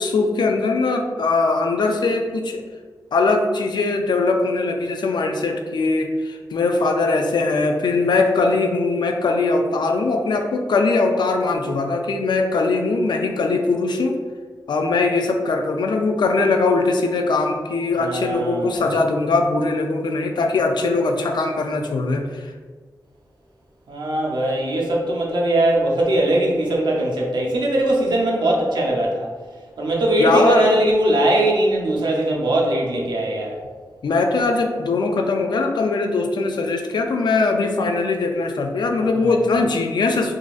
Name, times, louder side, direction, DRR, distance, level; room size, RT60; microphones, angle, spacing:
voice 1, 0.0-2.6 3.1-14.2 14.7-22.5 30.2-30.7 34.0-40.3, left 3 dB, 85° left, 4 dB, 0.4 m, -21 dB
voice 2, 18.0-18.9 23.9-29.3 29.8-33.6 39.2-39.4, right 1 dB, 85° right, -2 dB, 0.6 m, -20 dB
3.8 x 2.5 x 2.4 m, 1.5 s
wide cardioid pair, 120°, 7 cm